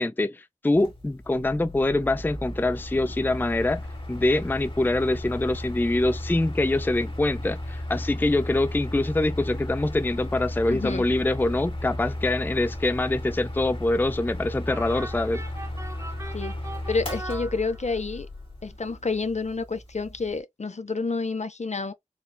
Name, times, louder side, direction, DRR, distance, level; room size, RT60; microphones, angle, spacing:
voice 1, 0.0-3.8 4.1-15.4, left 2 dB, 15° left, 0.4 m, -24 dB
Mechanical fan, 0.7-20.4, left 1 dB, 40° left, 1.8 m, -35 dB
voice 2, 10.7-11.1 16.3-16.6 16.9-18.3 18.6-21.9, left 4 dB, 60° left, 0.6 m, -29 dB
sound 1, 14.7-18.2, right 1 dB, 20° right, 0.9 m, -40 dB
4.5 x 3.2 x 2.3 m
wide cardioid pair, 50°, 13 cm